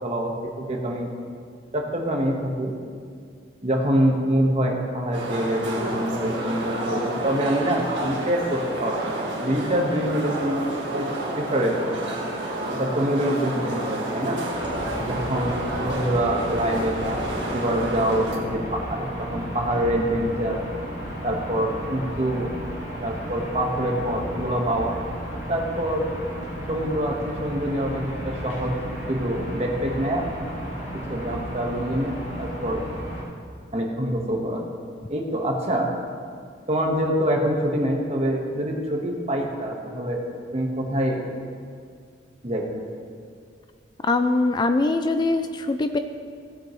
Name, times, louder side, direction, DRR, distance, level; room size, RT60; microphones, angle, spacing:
voice 1, 0.0-1.1 1.7-2.7 3.6-10.7 11.0-11.1 11.4-11.9 12.8-14.4 15.0-17.2 17.5-20.6 21.2-22.5 23.0-24.9 25.5-26.0 26.7-28.7 29.1-30.3 31.1-32.9 33.7-34.6 35.1-35.9 36.7-40.2 40.5-41.2 42.4-42.8, equal, 35° right, 0 dB, 1.4 m, -25 dB
sound 1, 5.1-18.3, right 1 dB, 70° right, 1.9 m, -30 dB
sound 2, 14.5-33.2, equal, 80° left, 3.1 m, -34 dB
voice 2, 44.0-46.0, left 2 dB, 25° left, 8 dB, 0.3 m, -22 dB
17.0 x 8.4 x 3.2 m, 2.1 s
head